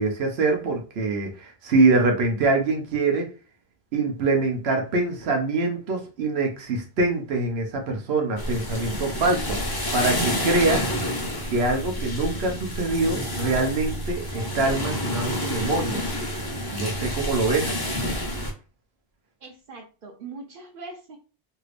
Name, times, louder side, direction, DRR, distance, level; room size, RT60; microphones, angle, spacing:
voice 1, 0.0-3.3 3.9-10.8 11.5-16.0 16.7-17.8, right 3 dB, 85° right, 3 dB, 1.0 m, -24 dB
sound 1, 8.4-18.5, equal, 30° left, 0.5 m, -29 dB
voice 2, 19.4-21.2, right 3 dB, 60° right, 2 dB, 0.7 m, -41 dB
2.8 x 2.4 x 3.2 m, 0.34 s
omnidirectional pair, 1.0 m